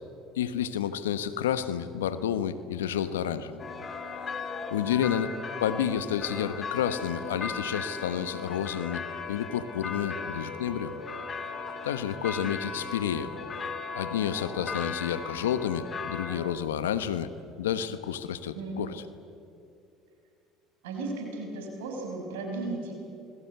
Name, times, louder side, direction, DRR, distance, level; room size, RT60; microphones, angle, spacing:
voice 1, 0.3-3.6 4.7-5.3 5.6-9.0 9.3-10.9 11.8-13.3 14.0-17.3 17.6-19.0, left 9 dB, 85° left, 13 dB, 1.2 m, -30 dB
sound 1, 3.6-16.4, left 4 dB, 35° left, 3.1 m, -37 dB
voice 2, 18.5-18.9 20.8-22.9, right 3 dB, 80° right, 1 dB, 6.1 m, -35 dB
28.0 x 21.5 x 8.1 m, 2.6 s
hypercardioid pair, 70°, 0 cm